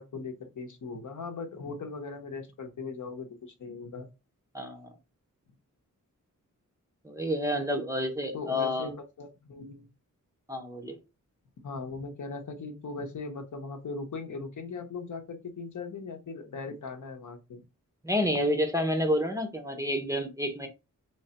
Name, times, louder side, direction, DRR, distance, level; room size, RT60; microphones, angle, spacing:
voice 1, 0.0-4.1 8.3-9.9 11.6-17.6, left 4 dB, 65° left, 0.8 m, -39 dB
voice 2, 4.5-4.9 7.0-8.9 10.5-11.0 18.0-20.7, equal, 10° right, 0.5 m, -29 dB
3.3 x 3.2 x 2.8 m
wide cardioid pair, 135°, 33 cm